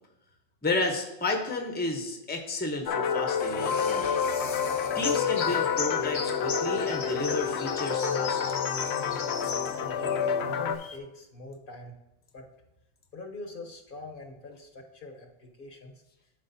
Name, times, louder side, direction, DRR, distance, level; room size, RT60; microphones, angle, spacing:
voice 1, 0.6-4.0 4.9-8.7, left 2 dB, 10° left, 2 dB, 0.8 m, -32 dB
sound 1, 2.9-10.8, left 7 dB, 90° left, 0.9 m, -28 dB
sound 2, 3.4-11.0, left 5 dB, 40° left, 0.4 m, -39 dB
voice 2, 9.1-12.0 12.3-12.5 13.1-16.0, left 2 dB, 60° left, 2 dB, 1.0 m, -44 dB
12.5 x 4.9 x 2.7 m, 0.93 s
omnidirectional pair, 1.1 m